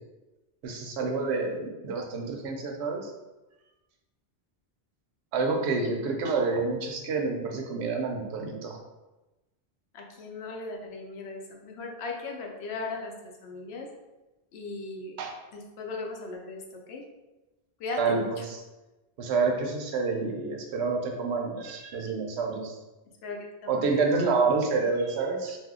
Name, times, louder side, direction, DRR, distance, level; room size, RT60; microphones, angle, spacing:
voice 1, 0.6-3.1 5.3-8.8 15.2-15.3 18.0-18.6 19.2-22.8 23.7-25.6, right 4 dB, 85° right, 2 dB, 0.8 m, -28 dB
voice 2, 9.9-13.9 14.5-15.2 15.5-16.6 16.9-17.0 17.8-18.3 23.2-24.3, left 3 dB, 80° left, 1 dB, 0.8 m, -38 dB
2.6 x 2.0 x 3.5 m, 1.1 s
omnidirectional pair, 1.1 m